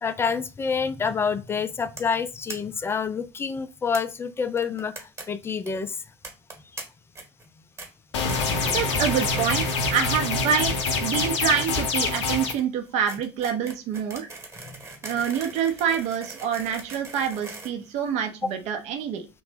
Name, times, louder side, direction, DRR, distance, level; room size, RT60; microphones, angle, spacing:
voice 1, 0.0-6.0 14.6-14.8 18.4-18.5, left 5 dB, 15° left, 0.3 m, -28 dB
sound 1, 2.0-2.2 2.5-2.6 2.8-2.9 3.1-3.2 3.9-4.0 4.6-5.2 5.5-5.7 6.2-6.8 7.1-7.5 7.8-7.9 8.3-8.6 9.0-9.3 9.6-10.2 10.4-18.5, right 3 dB, 20° right, 1.1 m, -41 dB
sound 2, 8.1-12.5, left 3 dB, 70° left, 0.6 m, -25 dB
voice 2, 8.6-14.3 15.0-19.3, right 8 dB, 50° right, 0.5 m, -26 dB
2.8 x 2.1 x 3.2 m
figure-of-eight pair, 65°, 15 cm